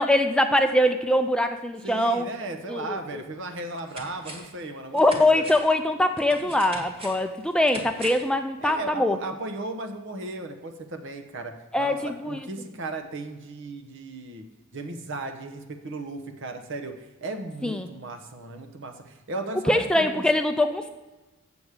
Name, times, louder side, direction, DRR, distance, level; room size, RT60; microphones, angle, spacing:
voice 1, 0.0-2.3 2.7-3.2 4.9-9.2 11.7-12.4 17.6-17.9 19.7-20.9, left 1 dB, 5° left, 6 dB, 0.4 m, -23 dB
voice 2, 1.8-5.5 6.4-6.5 8.6-14.4 14.7-20.2, right 2 dB, 60° right, 5 dB, 1.0 m, -36 dB
sound 1, 3.0-3.1 3.5-4.6 5.0-8.4 8.7-8.8, right 1 dB, 25° right, 1.5 m, -41 dB
8.2 x 7.1 x 4.8 m, 1.1 s
head